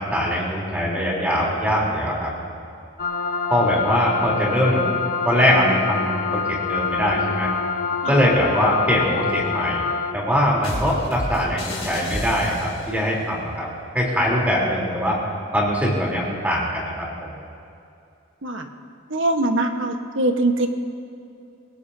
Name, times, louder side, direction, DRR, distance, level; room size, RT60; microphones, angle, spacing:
voice 1, 0.0-2.3 3.5-4.9 5.2-6.4 6.7-7.5 8.1-9.8 10.1-13.7 13.9-15.2 15.5-17.3, equal, 5° right, -4 dB, 3.5 m, -22 dB
sound 1, 3.0-10.1, left 5 dB, 45° left, 1.2 m, -26 dB
sound 2, 10.6-13.0, left 1 dB, 30° left, 4.4 m, -31 dB
voice 2, 19.1-20.7, right 2 dB, 65° right, 5 dB, 1.3 m, -22 dB
28.0 x 17.5 x 2.8 m, 2.5 s
head